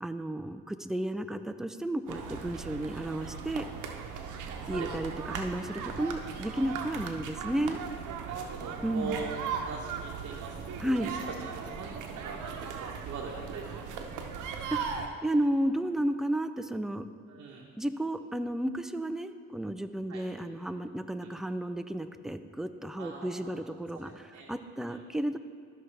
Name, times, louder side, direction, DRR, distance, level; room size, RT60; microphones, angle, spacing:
voice 1, 0.0-3.6 4.7-7.8 8.8-9.2 10.8-11.1 14.7-17.1 17.8-25.4, right 1 dB, ahead, 9 dB, 0.3 m, -33 dB
sound 1, 2.1-15.1, right 6 dB, 85° right, 0.8 m, -38 dB
voice 2, 4.6-4.9 5.3-5.4 5.8-5.9 8.3-10.6 10.8-14.2 17.3-17.7 20.1-20.3 21.2-21.3 23.0-23.7 23.9-24.5 24.9-25.0, right 5 dB, 55° right, -2 dB, 1.0 m, -42 dB
13.0 x 5.6 x 3.3 m, 2.1 s
cardioid pair, 90°, 30 cm